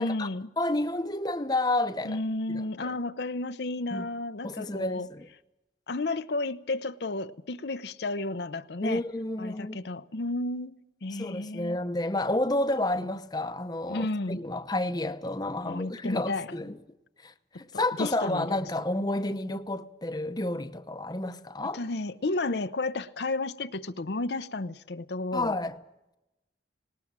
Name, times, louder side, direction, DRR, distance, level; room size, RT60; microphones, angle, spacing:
voice 1, 0.0-0.5 2.0-5.1 5.9-9.0 9.4-10.7 11.0-11.8 13.9-14.4 15.6-16.5 17.7-18.5 21.7-25.6, left 2 dB, 65° left, 0.7 m, -32 dB
voice 2, 0.6-2.2 2.5-3.0 3.9-4.1 4.4-5.3 8.8-9.8 11.2-16.8 17.2-21.8 25.3-25.8, left 2 dB, 20° left, 0.8 m, -30 dB
19.0 x 18.5 x 8.8 m
head